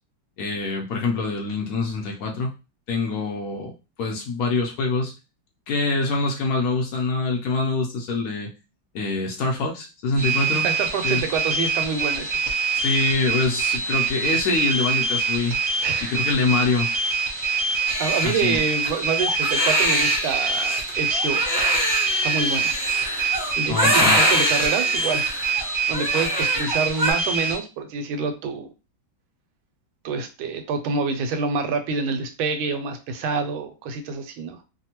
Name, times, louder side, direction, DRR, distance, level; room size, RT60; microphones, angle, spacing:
voice 1, 0.4-2.5 2.9-3.7 4.0-5.1 5.7-8.5 8.9-10.6 11.0-11.2 12.7-15.6 16.1-16.9 18.2-18.6 23.7-24.2, left 3 dB, 75° left, 0 dB, 0.8 m, -25 dB
sound 1, 10.2-27.6, right 4 dB, 55° right, 0.9 m, -25 dB
voice 2, 10.6-12.3 15.8-16.2 18.0-21.5 22.2-22.7 23.6-25.3 25.9-28.7 30.0-34.6, right 4 dB, 85° right, 7 dB, 1.4 m, -27 dB
Crying sobbing, 17.9-27.1, equal, 5° right, 0.6 m, -24 dB
3.3 x 2.1 x 2.9 m, 0.29 s
omnidirectional pair, 2.2 m